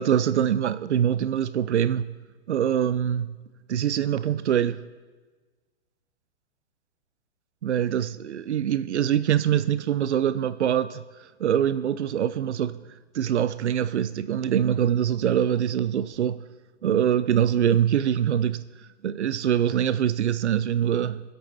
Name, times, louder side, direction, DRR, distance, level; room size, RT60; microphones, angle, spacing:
voice 1, 0.0-2.2 2.5-3.4 3.7-4.8 7.6-12.8 13.1-16.4 16.8-18.7 19.0-21.2, right 9 dB, 90° right, 0.7 m, -24 dB
21.0 x 8.1 x 3.4 m
hypercardioid pair, 130°, 33 cm